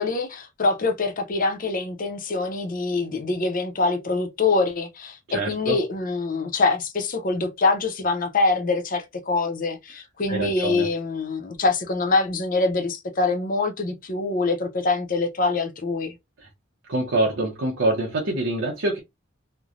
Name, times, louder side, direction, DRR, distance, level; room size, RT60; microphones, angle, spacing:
voice 1, 0.0-16.1, left 3 dB, 45° left, 0.6 m, -24 dB
voice 2, 5.3-5.8 10.3-10.9 16.9-19.0, right 2 dB, 85° right, 0.8 m, -25 dB
3.1 x 2.1 x 2.4 m
head